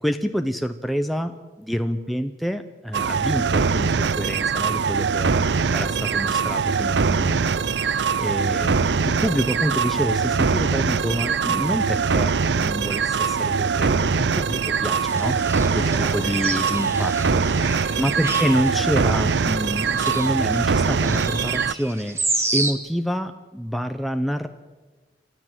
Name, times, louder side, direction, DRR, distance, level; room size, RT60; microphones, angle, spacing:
voice 1, 0.0-15.4 15.7-22.2 22.5-24.5, equal, ahead, 6 dB, 0.8 m, -27 dB
sound 1, 2.9-21.7, right 5 dB, 80° right, 0.6 m, -22 dB
sound 2, 14.9-22.7, right 2 dB, 15° right, 2.2 m, -31 dB
29.0 x 13.5 x 7.6 m, 1.3 s
head